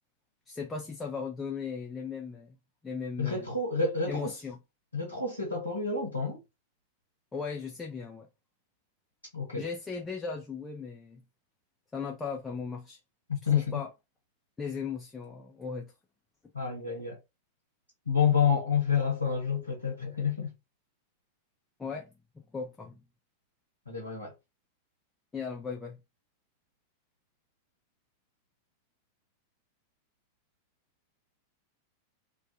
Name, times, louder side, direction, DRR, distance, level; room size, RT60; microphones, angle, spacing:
voice 1, 0.5-2.6 2.8-3.5 4.1-4.6 7.3-8.3 9.6-11.2 11.9-13.0 13.4-13.9 14.6-15.9 21.8-23.0 25.3-26.0, left 5 dB, 15° left, 0.4 m, -37 dB
voice 2, 3.2-4.3 4.9-6.4 9.3-9.6 13.3-13.8 16.5-17.2 18.1-20.5 23.9-24.3, left 6 dB, 85° left, 0.7 m, -29 dB
2.3 x 2.3 x 2.5 m
figure-of-eight pair, 90°, 0 cm